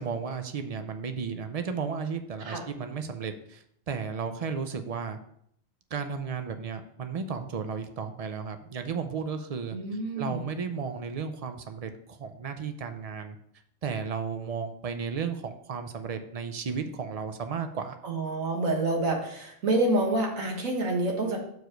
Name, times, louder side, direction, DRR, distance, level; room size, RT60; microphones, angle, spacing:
voice 1, 0.0-5.2 5.9-9.8 10.2-13.4 13.8-18.0, right 6 dB, 60° right, 7 dB, 0.3 m, -34 dB
voice 2, 9.7-10.5 18.0-21.4, right 2 dB, 85° right, 1 dB, 1.8 m, -28 dB
6.2 x 4.7 x 5.0 m, 0.70 s
omnidirectional pair, 1.4 m